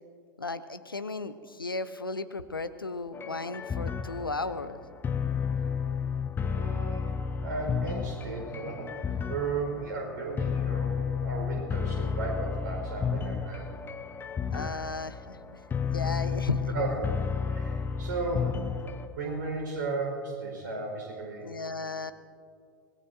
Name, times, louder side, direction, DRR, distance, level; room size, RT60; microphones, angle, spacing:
voice 1, 0.4-4.8 14.5-15.4 15.9-16.7 21.4-22.1, left 3 dB, 85° left, 12 dB, 0.7 m, -35 dB
sound 1, 3.1-19.1, left 6 dB, 20° left, 0.8 m, -32 dB
voice 2, 6.4-7.1 7.4-13.8 16.1-16.2 16.7-18.6 19.1-21.5, right 3 dB, 60° right, 1 dB, 4.5 m, -35 dB
24.5 x 20.0 x 2.7 m, 2.3 s
figure-of-eight pair, 85°, 11 cm